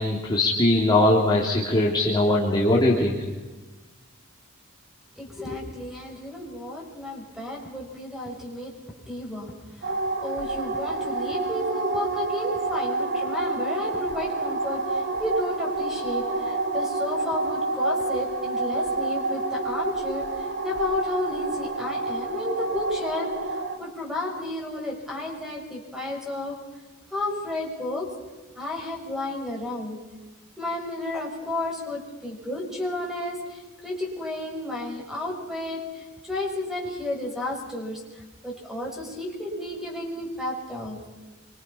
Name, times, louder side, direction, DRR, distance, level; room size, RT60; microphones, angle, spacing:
voice 1, 0.0-3.2, left 1 dB, 20° left, -3 dB, 3.1 m, -21 dB
voice 2, 5.2-8.7 9.0-9.9 10.2-26.6 27.1-28.1 28.5-30.0 30.6-41.1, left 1 dB, ahead, -1 dB, 6.8 m, -32 dB
sound 1, 9.8-23.8, right 2 dB, 55° right, 3.5 m, -28 dB
27.5 x 25.0 x 5.8 m, 1.2 s
head